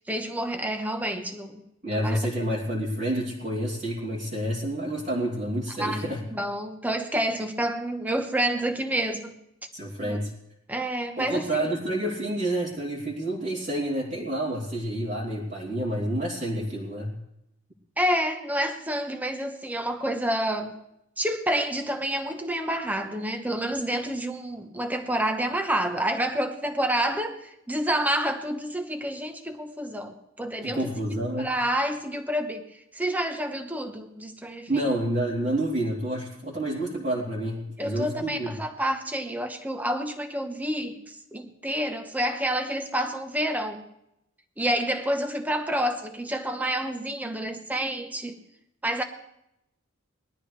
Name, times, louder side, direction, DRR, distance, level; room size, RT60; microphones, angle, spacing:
voice 1, 0.0-2.2 5.8-9.4 10.0-10.2 10.7-11.7 18.0-20.7 21.2-30.9 31.4-34.9 37.8-43.8 44.6-48.4 48.8-49.0, right 1 dB, 5° right, 6 dB, 1.1 m, -29 dB
voice 2, 1.8-6.2 9.7-10.3 11.2-17.1 30.6-31.5 34.7-38.5, right 1 dB, 40° right, -7 dB, 2.9 m, -29 dB
21.0 x 13.0 x 3.4 m, 0.82 s
head